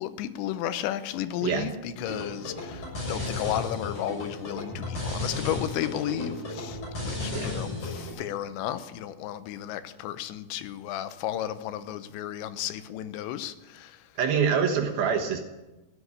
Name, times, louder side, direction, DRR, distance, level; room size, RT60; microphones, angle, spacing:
voice 1, 0.0-14.0, left 11 dB, 85° left, 3.1 m, -33 dB
sound 1, 2.0-8.1, left 2 dB, 40° left, 7.9 m, -34 dB
voice 2, 14.2-15.4, right 7 dB, 65° right, 2.9 m, -25 dB
16.0 x 8.1 x 9.7 m
omnidirectional pair, 5.0 m